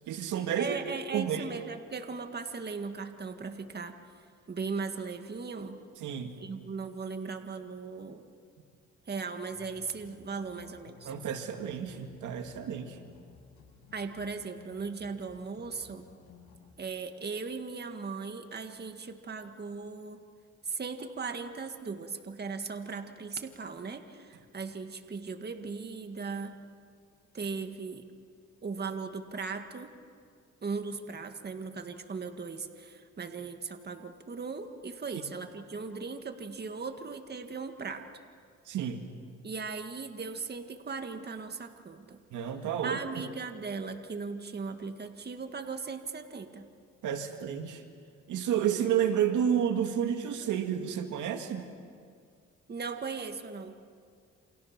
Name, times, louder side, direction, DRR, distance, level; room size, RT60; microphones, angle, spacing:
voice 1, 0.1-0.8 1.1-1.5 6.0-6.4 11.1-13.0 38.7-39.0 42.3-43.0 47.0-47.8 48.3-51.7, right 9 dB, 80° right, 5 dB, 2.1 m, -30 dB
voice 2, 0.6-4.0 4.5-5.8 6.4-8.2 9.1-11.1 13.9-16.0 16.8-20.2 20.6-26.6 27.3-28.1 28.6-29.9 30.6-38.1 39.4-42.2 42.8-46.7 52.7-53.8, right 4 dB, 35° right, 6 dB, 1.9 m, -38 dB
sound 1, 9.5-16.7, left 6 dB, 85° left, 7.0 m, -56 dB
29.5 x 27.0 x 6.0 m, 2.2 s
cardioid pair, 90°, 30 cm